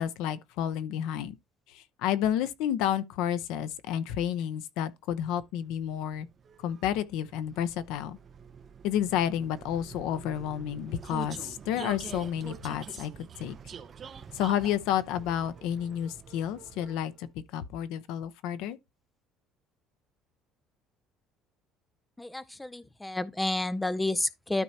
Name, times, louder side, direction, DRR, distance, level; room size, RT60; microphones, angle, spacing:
voice 1, 0.0-1.4 1.7-6.3 6.6-8.2 8.8-13.6 14.3-18.8, left 10 dB, 75° left, 0.8 m, -31 dB
Vehicle, 5.4-17.2, right 7 dB, 25° right, 0.7 m, -46 dB
voice 2, 22.2-24.6, left 2 dB, 5° left, 0.4 m, -30 dB
13.0 x 4.5 x 2.8 m
cardioid pair, 180°, 0 cm